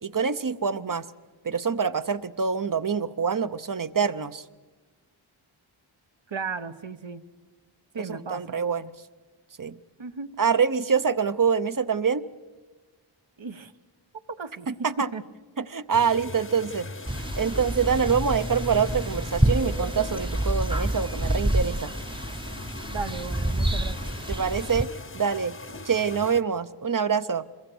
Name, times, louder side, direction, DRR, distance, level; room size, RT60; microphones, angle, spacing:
voice 1, 0.0-1.1 1.4-4.4 8.1-8.9 9.6-9.8 10.4-12.2 14.7-15.1 15.6-16.9 17.4-21.9 24.3-24.9 25.1-25.6 25.8-27.4, right 6 dB, 40° right, 14 dB, 0.7 m, -25 dB
voice 2, 6.3-7.2 7.9-8.6 10.0-10.3 13.4-13.7 14.4-14.7 15.0-15.2 22.9-24.4 25.7-25.8, right 5 dB, 65° right, 8 dB, 1.0 m, -35 dB
sound 1, 15.9-26.4, left 3 dB, 25° left, 0.9 m, -40 dB
sound 2, 17.1-24.8, right 1 dB, 10° right, 0.7 m, -28 dB
26.5 x 22.0 x 6.2 m, 1.3 s
wide cardioid pair, 55°, 49 cm